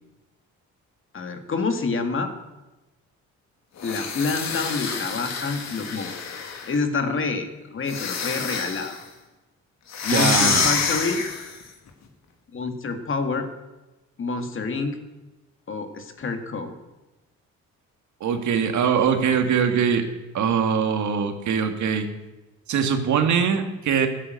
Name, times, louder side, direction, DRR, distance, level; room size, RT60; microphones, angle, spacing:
voice 1, 1.1-2.3 3.8-6.1 6.7-9.0 10.0-11.2 12.5-13.5 14.2-15.0 15.7-16.7, left 4 dB, 45° left, 6 dB, 2.1 m, -27 dB
sound 1, 3.8-6.8 7.8-9.0 9.9-11.6, left 6 dB, 60° left, 2.6 m, -27 dB
voice 2, 10.1-10.7 18.2-20.1 20.3-22.1 22.7-24.1, right 7 dB, 70° right, 6 dB, 2.2 m, -22 dB
15.0 x 10.0 x 7.9 m, 1.1 s
cardioid pair, 90°, 30 cm